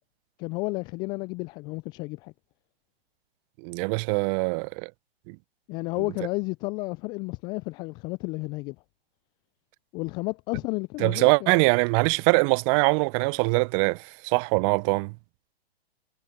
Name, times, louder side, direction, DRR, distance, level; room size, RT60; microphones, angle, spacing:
voice 1, 0.4-2.3 5.7-8.8 9.9-11.5, left 26 dB, 15° left, 0.3 m, -32 dB
voice 2, 3.6-4.9 5.3-5.4 11.0-15.1, right 33 dB, 30° right, 0.7 m, -23 dB
figure-of-eight pair, 115°, 31 cm